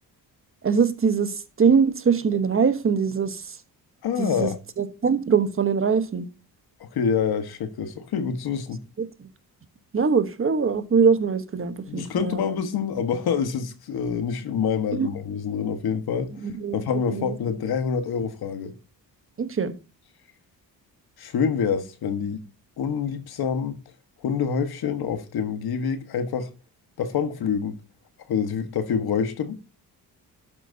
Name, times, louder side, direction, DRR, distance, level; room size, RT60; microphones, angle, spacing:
voice 1, 0.6-3.6 4.2-4.5 4.8-6.3 9.9-12.4 14.9-15.1 16.3-16.8 17.1-17.3 19.4-19.7, right 6 dB, 35° right, 1.2 m, -22 dB
voice 2, 4.0-4.6 6.8-8.8 11.9-16.3 16.7-18.7 21.2-22.4 22.8-23.8 24.2-26.5 27.0-27.8 28.3-29.6, left 6 dB, 80° left, 1.6 m, -26 dB
12.0 x 8.6 x 2.8 m
cardioid pair, 120°, 37 cm